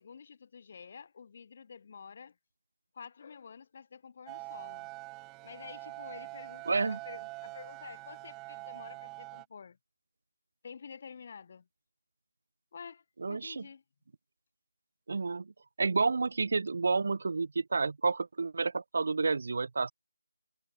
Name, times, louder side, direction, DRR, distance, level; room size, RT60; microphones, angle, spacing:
voice 1, 0.0-2.4 2.9-4.9 5.4-9.8 10.6-11.7 12.7-13.8, left 6 dB, 35° left, 7.7 m, -49 dB
sound 1, 4.3-9.5, right 23 dB, 10° right, 1.9 m, -45 dB
voice 2, 6.7-7.0 13.2-13.7 15.1-15.5 15.8-19.9, right 4 dB, 50° right, 2.6 m, -30 dB
figure-of-eight pair, 165°, 0 cm